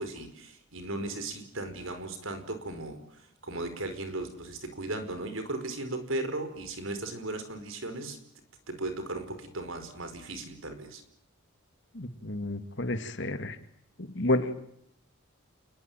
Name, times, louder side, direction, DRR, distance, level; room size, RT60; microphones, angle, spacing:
voice 1, 0.0-3.0 3.4-8.2 8.7-11.0, right 2 dB, 70° right, 9 dB, 5.0 m, -36 dB
voice 2, 11.9-13.6 14.1-14.5, left 1 dB, 55° left, 9 dB, 2.3 m, -30 dB
29.0 x 21.0 x 9.3 m, 0.74 s
head